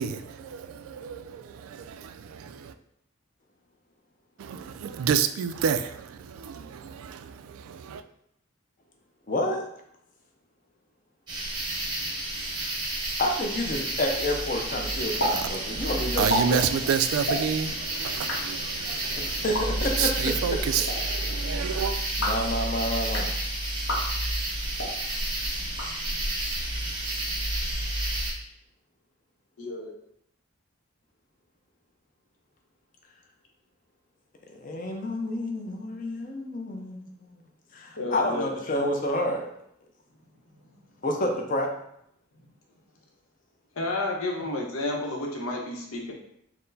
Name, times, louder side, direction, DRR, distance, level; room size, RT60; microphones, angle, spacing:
voice 1, 0.0-2.7 4.4-8.0 14.9-19.5 20.0-22.0, right 7 dB, 85° right, 0.3 m, -30 dB
voice 2, 9.3-9.6 13.2-16.9 19.2-20.6 22.2-23.3 34.5-37.0 37.7-39.5 41.0-41.7, left 1 dB, 40° left, 0.6 m, -29 dB
sound 1, 11.3-28.3, right 1 dB, 20° right, 0.7 m, -30 dB
sound 2, 15.2-15.3 15.6-15.7 16.1-16.4 17.2-17.4 18.1-18.4 19.4-19.6 20.6-21.0 22.0-22.4 23.0-23.3 23.8-24.0 24.7-24.9 25.6-26.3, left 1 dB, 65° left, 1.1 m, -30 dB
voice 3, 29.6-29.9 38.0-38.5 43.7-46.1, left 2 dB, 90° left, 0.9 m, -31 dB
4.3 x 2.1 x 3.9 m
head